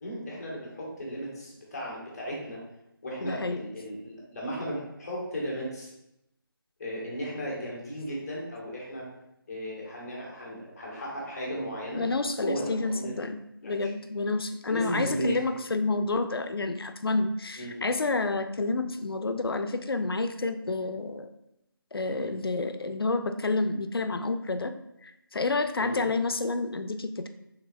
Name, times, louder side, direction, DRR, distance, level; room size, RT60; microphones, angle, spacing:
voice 1, 0.0-2.6 3.0-5.9 6.8-9.0 9.5-12.0 12.4-13.2 13.6-13.9 14.7-15.4 17.6-17.8 22.1-22.3 25.8-26.0, equal, 10° left, -5 dB, 0.5 m, -35 dB
voice 2, 3.2-3.7 11.9-21.3 21.9-24.7 25.0-27.3, left 3 dB, 75° left, 9 dB, 0.4 m, -29 dB
5.5 x 3.3 x 2.3 m, 0.85 s
figure-of-eight pair, 160°, 12 cm